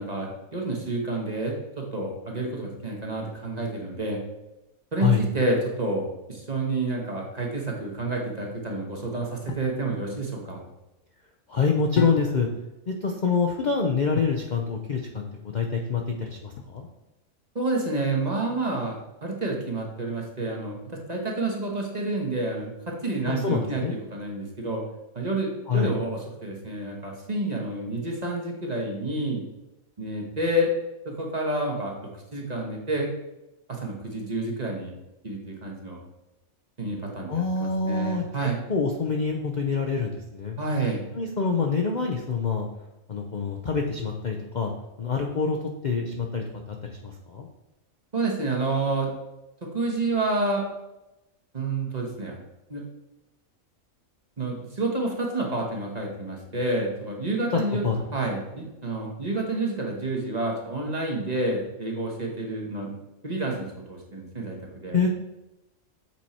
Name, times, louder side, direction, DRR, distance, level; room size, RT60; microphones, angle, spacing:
voice 1, 0.0-4.2 4.9-10.6 17.5-23.8 24.1-24.8 25.1-29.4 30.0-30.7 31.0-31.9 32.3-33.1 33.7-35.0 35.2-36.0 36.8-38.6 40.6-41.0 48.1-49.1 49.7-50.6 51.5-52.4 52.7-52.8 54.4-57.8 58.1-63.0 63.2-64.6 64.8-65.0, right 2 dB, 30° right, 0 dB, 1.2 m, -29 dB
sound 1, 9.5-9.8 12.0-12.6 14.2-14.5 16.6-17.1, left 8 dB, 85° left, 1.1 m, -34 dB
voice 2, 11.5-12.5 12.9-16.9 23.3-23.9 25.7-26.0 37.3-40.6 41.1-42.7 43.1-44.7 45.0-45.6 45.8-47.5 57.7-58.0 64.9-65.1, left 5 dB, 45° left, 2 dB, 0.6 m, -26 dB
7.4 x 4.5 x 4.2 m, 0.95 s
omnidirectional pair, 1.4 m